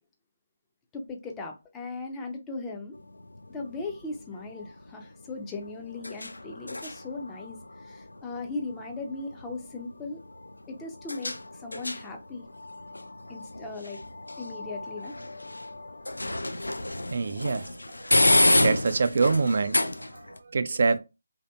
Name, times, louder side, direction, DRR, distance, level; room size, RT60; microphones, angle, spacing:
voice 1, 0.9-3.0 3.5-10.2 10.7-12.4 13.3-14.0 14.4-15.1, left 3 dB, 10° left, 0.5 m, -38 dB
sound 1, 2.9-20.4, left 1 dB, 80° left, 0.3 m, -31 dB
voice 2, 17.1-18.1 18.4-21.0, right 4 dB, 50° right, 0.3 m, -26 dB
2.7 x 2.5 x 2.2 m
figure-of-eight pair, 150°, 0 cm